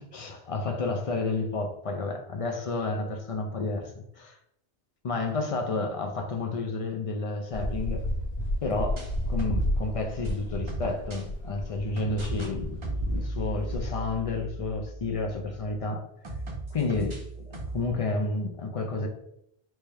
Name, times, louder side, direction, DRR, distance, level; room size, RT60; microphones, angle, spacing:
voice 1, 0.1-4.4 5.0-8.0 8.6-16.1 16.7-17.2 17.5-19.1, left 3 dB, 50° left, 0.4 m, -31 dB
sound 1, 7.5-13.9, equal, 75° left, 1.0 m, -32 dB
sound 2, 8.6-11.3 12.0-12.5 12.8-15.8 16.2-17.9, right 1 dB, 35° right, 0.6 m, -38 dB
4.2 x 2.3 x 3.2 m
omnidirectional pair, 1.1 m